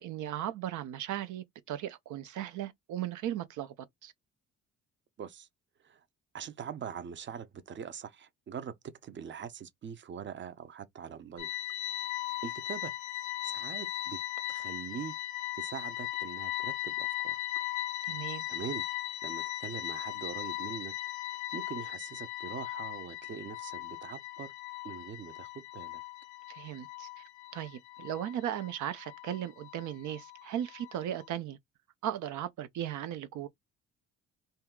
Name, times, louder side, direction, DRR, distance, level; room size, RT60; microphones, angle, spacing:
voice 1, 0.0-3.7 4.0-4.1 18.0-18.5 26.5-27.2 27.5-31.6 32.0-33.5, right 11 dB, 75° right, 0.5 m, -37 dB
voice 2, 5.2-5.5 5.8-6.0 6.3-8.8 9.0-11.5 12.4-12.9 13.4-14.2 14.5-15.1 15.6-17.4 18.5-18.8 19.2-20.9 21.5-24.5 24.8-26.0, right 7 dB, 40° right, 0.6 m, -42 dB
sound 1, 11.4-31.3, left 15 dB, 75° left, 0.5 m, -38 dB
2.7 x 2.3 x 3.6 m
cardioid pair, 90°, 30 cm